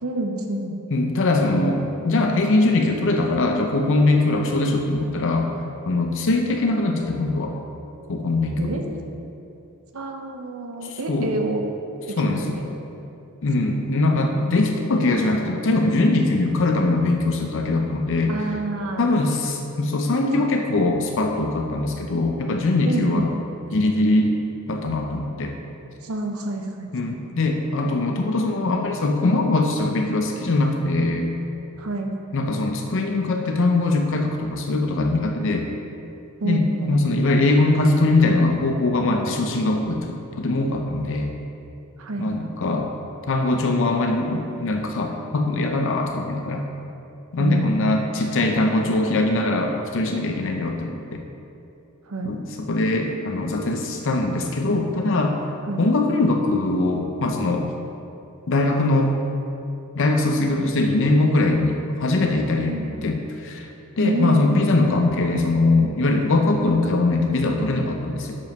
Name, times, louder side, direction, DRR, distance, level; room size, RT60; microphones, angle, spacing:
voice 1, 0.0-0.8 8.6-8.8 9.9-11.6 12.1-12.6 18.3-19.1 20.3-20.5 22.8-23.3 26.0-26.9 31.8-32.1 36.4-37.0 42.0-42.3 47.4-48.0 52.1-52.4 55.7-55.8 62.7-62.9 64.0-64.5, right 2 dB, 75° right, 3 dB, 0.8 m, -28 dB
voice 2, 0.9-5.5 5.9-7.5 8.1-8.8 10.8-11.3 12.2-12.6 13.4-18.3 19.0-23.3 23.7-24.3 24.7-25.5 26.9-31.3 32.3-35.7 36.4-41.3 42.2-42.9 43.3-46.7 47.3-51.2 52.2-55.4 55.8-57.7 58.5-59.1 59.9-63.7 64.0-68.4, left 2 dB, 60° left, 3 dB, 0.6 m, -21 dB
7.1 x 5.3 x 5.3 m, 2.8 s
head